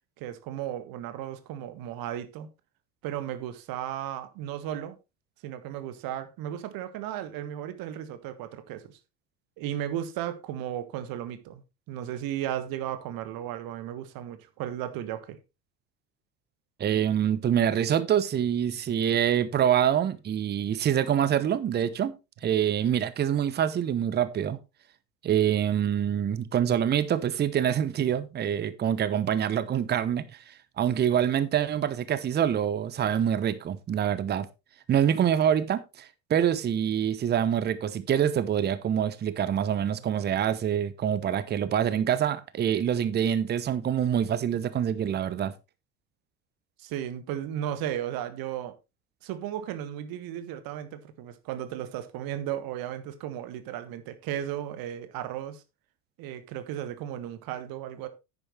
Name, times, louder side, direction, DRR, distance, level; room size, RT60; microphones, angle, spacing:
voice 1, 0.2-2.5 3.0-5.0 5.4-9.0 9.6-15.4 46.8-48.8 49.2-55.6 56.2-58.1, right 11 dB, 45° right, 1.7 m, -35 dB
voice 2, 16.8-22.1 22.4-24.6 25.2-34.5 34.9-45.5, right 9 dB, 20° right, 0.9 m, -26 dB
10.0 x 9.8 x 3.2 m
figure-of-eight pair, 75°, 49 cm